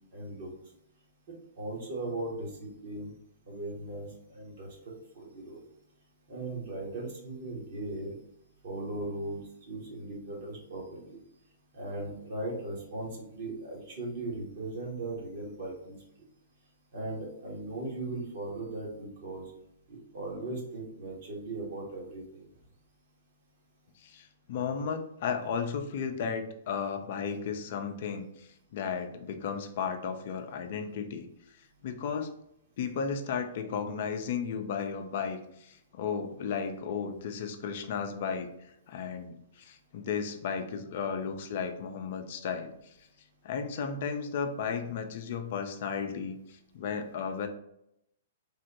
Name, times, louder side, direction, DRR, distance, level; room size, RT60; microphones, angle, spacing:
voice 1, 0.1-0.5 1.6-3.1 3.5-4.7 5.1-5.6 6.3-8.2 8.6-11.2 11.7-16.0 16.9-19.4 19.9-22.4, right 2 dB, 55° right, -2 dB, 1.3 m, -38 dB
voice 2, 24.0-31.3 31.6-32.3 32.8-43.1 43.4-47.5, left 6 dB, 55° left, 6 dB, 0.4 m, -34 dB
3.3 x 2.1 x 2.9 m, 0.78 s
figure-of-eight pair, 115°, 0 cm